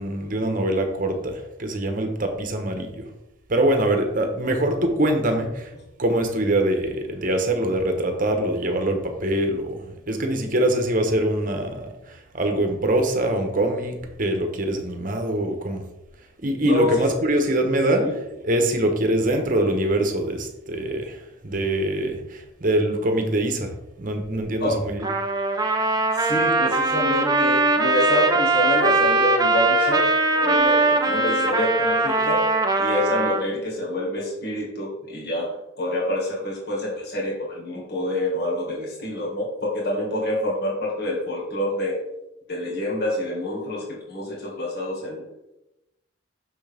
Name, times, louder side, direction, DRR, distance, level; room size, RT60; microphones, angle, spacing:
voice 1, 0.0-3.1 3.5-5.7 6.0-15.8 16.4-18.1 18.4-23.7 24.0-25.1, right 1 dB, 40° right, 5 dB, 1.1 m, -24 dB
voice 2, 16.6-17.1 17.5-17.6 17.9-18.1 24.6-24.8 26.1-32.4 32.8-42.0 42.5-45.3, left 1 dB, 50° left, -3 dB, 1.9 m, -27 dB
Trumpet, 25.0-33.4, right 2 dB, 20° right, 0.6 m, -21 dB
6.6 x 6.2 x 3.5 m, 0.91 s
head